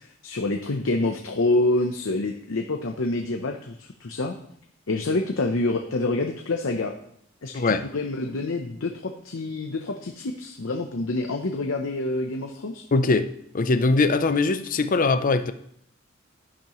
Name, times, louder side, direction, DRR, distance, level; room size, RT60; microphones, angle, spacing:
voice 1, 0.0-4.3 4.9-6.9 7.4-12.8, left 2 dB, 80° left, 0.8 m, -27 dB
voice 2, 12.9-13.3 13.5-15.5, left 3 dB, 45° left, 0.6 m, -21 dB
11.0 x 10.5 x 3.1 m
head